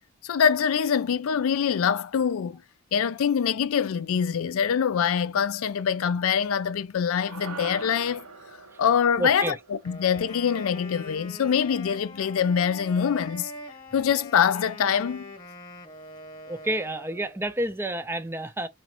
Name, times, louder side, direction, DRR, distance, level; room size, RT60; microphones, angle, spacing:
voice 1, 0.2-2.6 2.9-8.2 8.8-9.5 9.9-13.5 13.9-15.3, left 7 dB, 70° left, 0.4 m, -24 dB
sound 1, 7.3-11.7, right 5 dB, 85° right, 0.8 m, -44 dB
voice 2, 9.2-9.6 16.5-18.7, right 1 dB, 10° right, 0.4 m, -29 dB
Wind instrument woodwind instrument, 9.8-17.5, left 1 dB, 20° left, 1.0 m, -43 dB
4.2 x 2.5 x 2.9 m
head